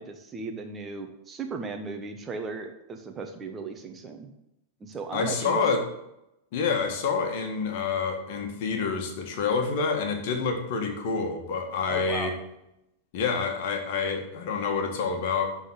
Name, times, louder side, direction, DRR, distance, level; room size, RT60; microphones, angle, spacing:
voice 1, 0.0-4.3 4.8-5.6 11.9-12.3, right 4 dB, 20° right, 5 dB, 1.1 m, -36 dB
voice 2, 5.1-5.8 6.5-12.3 13.1-15.6, left 5 dB, 50° left, 4 dB, 1.7 m, -27 dB
11.5 x 4.0 x 7.7 m, 0.87 s
figure-of-eight pair, 90°, 0 cm